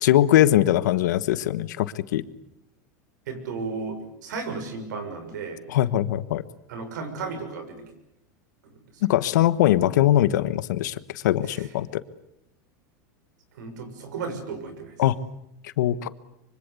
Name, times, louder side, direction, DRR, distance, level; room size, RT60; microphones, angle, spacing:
voice 1, 0.0-2.2 5.7-6.4 9.0-10.9 11.2-12.0 15.0-15.2 15.8-16.1, left 13 dB, 85° left, 14 dB, 1.3 m, -21 dB
voice 2, 3.3-5.6 6.7-7.8 8.6-8.7 11.4-11.7 13.5-14.9, right 4 dB, 85° right, 8 dB, 6.5 m, -34 dB
25.0 x 24.5 x 8.4 m, 0.84 s
supercardioid pair, 125°, 9 cm